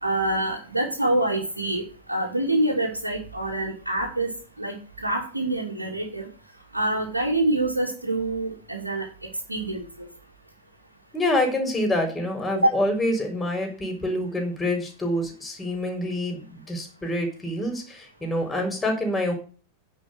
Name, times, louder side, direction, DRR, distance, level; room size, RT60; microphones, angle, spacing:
voice 1, 0.0-1.8 2.1-4.3 4.6-6.3 6.7-9.1 9.5-9.8 12.6-12.7, right 1 dB, 80° right, -3 dB, 2.5 m, -25 dB
voice 2, 11.1-19.3, left 1 dB, 10° left, 3 dB, 4.1 m, -26 dB
10.5 x 5.4 x 7.8 m, 0.38 s
figure-of-eight pair, 90°, 0 cm